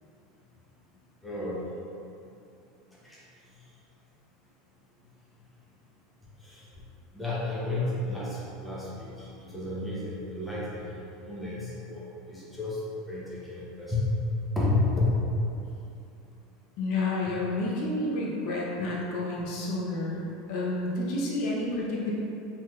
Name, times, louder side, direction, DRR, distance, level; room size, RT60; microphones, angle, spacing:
voice 1, 1.2-1.6 3.0-3.2 6.4-6.6 7.1-12.0 12.3-12.8 13.1-14.1 14.5-15.1, left 2 dB, 5° left, -8 dB, 0.6 m, -31 dB
voice 2, 16.8-22.1, left 2 dB, 55° left, -5 dB, 0.5 m, -30 dB
3.3 x 2.7 x 2.2 m, 2.7 s
supercardioid pair, 145°, 0 cm